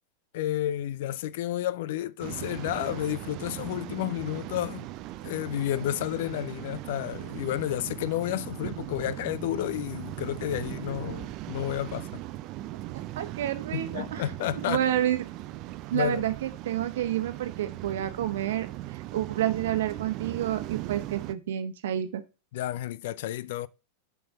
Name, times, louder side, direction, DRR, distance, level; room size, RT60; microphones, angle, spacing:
voice 1, 0.3-4.9 5.2-12.2 13.7-14.8 15.9-16.3 22.5-23.7, left 13 dB, 50° left, 0.4 m, -31 dB
Waves surf, 2.2-21.3, right 15 dB, 40° right, 0.5 m, -39 dB
voice 2, 12.9-14.2 14.7-15.2 15.9-22.2, right 11 dB, 55° right, 1.1 m, -29 dB
7.5 x 4.6 x 5.5 m
figure-of-eight pair, 90°, 0 cm